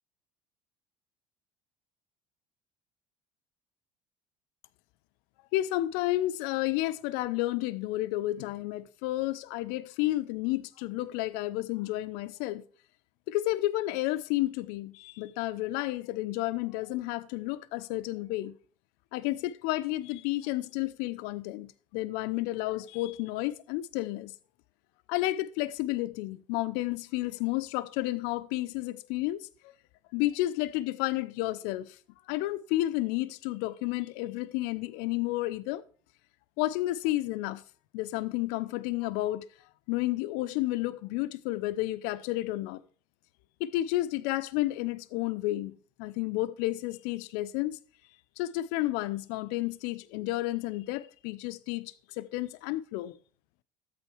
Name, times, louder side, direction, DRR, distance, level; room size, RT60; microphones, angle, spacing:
voice 1, 5.5-12.6 13.3-18.5 19.1-24.3 25.1-29.7 30.1-32.0 32.3-35.8 36.6-37.6 37.9-39.4 39.9-42.8 43.6-45.7 46.0-47.8 48.4-53.2, left 17 dB, 70° left, 0.7 m, -31 dB
13.0 x 8.6 x 3.2 m
hypercardioid pair, 75°, 17 cm